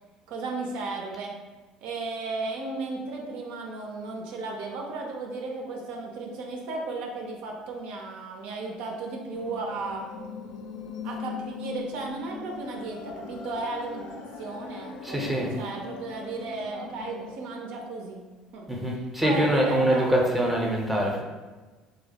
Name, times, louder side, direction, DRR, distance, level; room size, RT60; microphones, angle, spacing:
voice 1, 0.3-1.3 1.8-10.0 11.0-18.2 18.5-18.7 18.9-20.1, right 3 dB, 65° right, 0 dB, 0.4 m, -35 dB
sound 1, 9.3-17.3, left 5 dB, 65° left, 0.3 m, -40 dB
voice 2, 15.0-15.6 18.7-21.2, right 1 dB, 5° right, -1 dB, 0.6 m, -24 dB
2.5 x 2.0 x 2.8 m, 1.3 s
hypercardioid pair, 65°, 2 cm